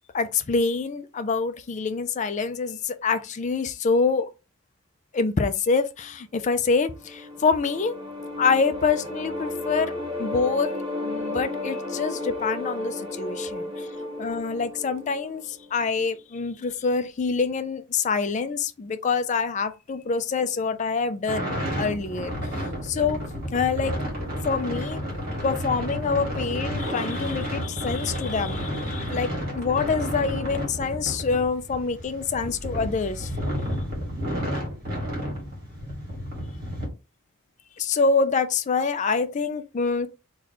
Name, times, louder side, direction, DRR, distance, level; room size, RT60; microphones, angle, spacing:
voice 1, 0.1-4.3 5.1-7.9 8.4-10.7 11.0-13.9 14.2-22.3 22.8-23.2 23.5-23.9 24.4-25.0 25.4-33.3 37.8-40.1, left 4 dB, 35° left, 0.4 m, -26 dB
sound 1, 6.7-15.9, left 2 dB, 25° right, 1.1 m, -33 dB
sound 2, 21.3-36.9, equal, 45° right, 1.5 m, -31 dB
3.0 x 2.3 x 3.9 m
head